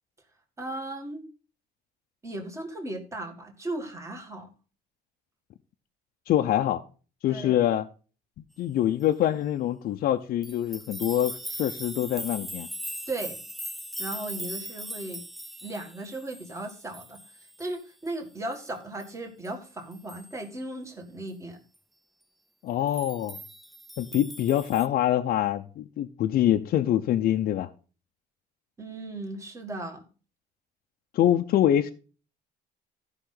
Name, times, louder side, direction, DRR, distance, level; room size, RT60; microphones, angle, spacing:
voice 1, 0.6-1.2 2.2-4.5 7.3-7.6 13.1-13.4 14.0-15.2 15.6-17.2 17.6-21.6 28.8-30.0, right 2 dB, 15° right, 1.8 m, -36 dB
voice 2, 6.3-6.8 7.2-7.9 8.6-12.7 22.6-23.4 24.0-27.7 31.1-31.9, left 11 dB, 60° left, 0.7 m, -25 dB
sound 1, 10.4-17.7 18.1-18.2 18.5-18.6 19.0-19.1 19.4-19.5 19.9-20.4 22.9-24.9, equal, ahead, 0.4 m, -40 dB
14.5 x 5.5 x 3.9 m
cardioid pair, 150°, 17 cm